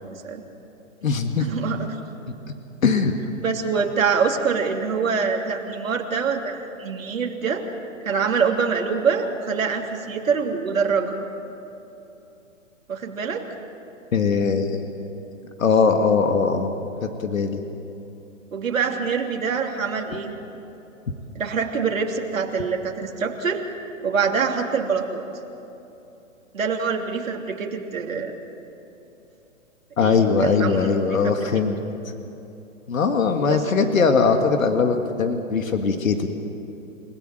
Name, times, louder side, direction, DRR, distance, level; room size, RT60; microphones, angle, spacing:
voice 1, 0.1-0.4 1.4-2.0 3.4-7.6 8.0-11.1 12.9-13.4 18.5-20.3 21.3-23.6 24.0-25.2 26.5-28.4 30.0-31.3 33.4-33.6, right 5 dB, 90° right, 1 dB, 3.1 m, -25 dB
voice 2, 1.0-1.5 2.8-3.1 14.1-14.8 15.6-16.7 17.2-17.6 30.0-31.8 32.9-36.3, left 5 dB, 85° left, 6 dB, 2.0 m, -20 dB
30.0 x 17.5 x 7.8 m, 2.9 s
hypercardioid pair, 150°, 39 cm